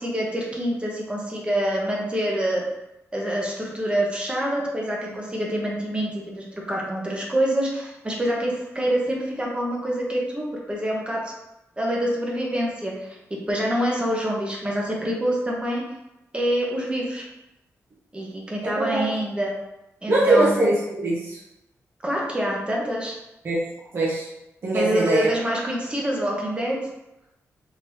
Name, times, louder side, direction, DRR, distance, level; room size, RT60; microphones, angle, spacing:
voice 1, 0.0-2.6 3.1-11.3 11.8-13.2 13.5-15.8 16.3-17.2 18.1-19.5 20.0-20.6 22.0-23.2 24.7-26.8, equal, 20° right, -2 dB, 0.9 m, -26 dB
voice 2, 20.1-21.4 23.4-23.7 23.9-24.3 24.6-25.3, right 2 dB, 50° right, -6 dB, 0.8 m, -21 dB
3.9 x 2.8 x 2.9 m, 0.90 s
wide cardioid pair, 105°, 5 cm